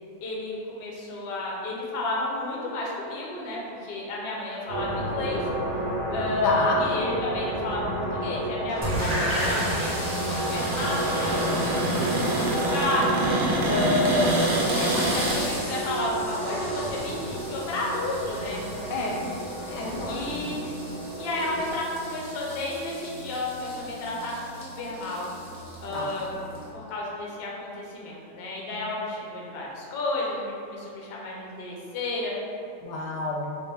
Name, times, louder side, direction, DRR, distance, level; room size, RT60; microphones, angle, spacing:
voice 1, 0.2-5.4 6.1-13.0 13.6-18.6 20.0-20.7 21.2-25.3 25.8-26.3 26.7-32.3, left 2 dB, 65° left, -4 dB, 0.6 m, -31 dB
sound 1, 4.7-21.7, right 1 dB, 55° right, 0.9 m, -31 dB
voice 2, 6.4-6.8 18.9-19.2 19.7-20.5 25.9-26.1 32.8-33.5, left 2 dB, 85° left, -2 dB, 1.2 m, -30 dB
Cupboard open or close, 8.7-15.4, right 1 dB, 80° right, 1.2 m, -28 dB
sound 2, 8.8-26.7, equal, 15° right, 0.4 m, -35 dB
3.5 x 2.3 x 3.3 m, 2.5 s
omnidirectional pair, 1.8 m